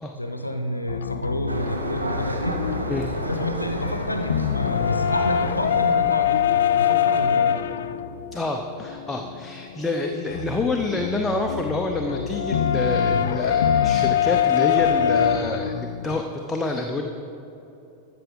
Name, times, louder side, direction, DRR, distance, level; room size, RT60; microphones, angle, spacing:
voice 1, 0.1-2.7 3.1-7.6, left 1 dB, 85° left, 6 dB, 0.8 m, -29 dB
sound 1, 0.9-16.2, left 9 dB, 65° left, 0.3 m, -24 dB
sound 2, 1.5-6.6, right 1 dB, 80° right, 1.0 m, -32 dB
voice 2, 8.3-17.0, left 2 dB, 10° left, 2 dB, 0.7 m, -27 dB
13.5 x 6.9 x 5.2 m, 2.9 s
figure-of-eight pair, 90°, 0 cm